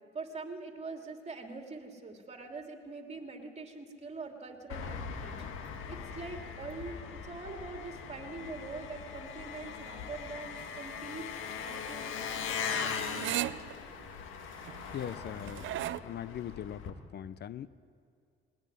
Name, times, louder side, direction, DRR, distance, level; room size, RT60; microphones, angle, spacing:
voice 1, 0.1-13.0, right 3 dB, 35° right, 3 dB, 3.0 m, -44 dB
Engine, 4.7-16.9, left 6 dB, 90° left, 1.9 m, -40 dB
sound 1, 10.6-16.0, right 14 dB, 75° right, 0.6 m, -39 dB
voice 2, 14.9-15.7 16.0-17.7, left 10 dB, 55° left, 16 dB, 0.7 m, -40 dB
19.5 x 18.5 x 9.9 m, 2.3 s
cardioid pair, 90°, 20 cm